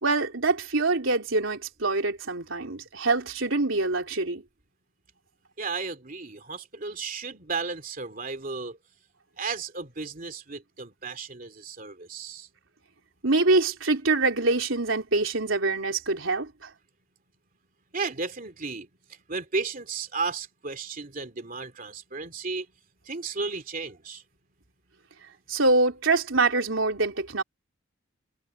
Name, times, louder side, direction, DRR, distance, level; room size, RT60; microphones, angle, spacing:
voice 1, 0.0-4.4 13.2-16.7 25.5-27.4, right 3 dB, 85° right, 3.7 m, -25 dB
voice 2, 5.6-8.8 9.4-12.5 17.9-18.9 19.3-22.7 23.0-24.2, right 4 dB, 45° right, 2.8 m, -34 dB
head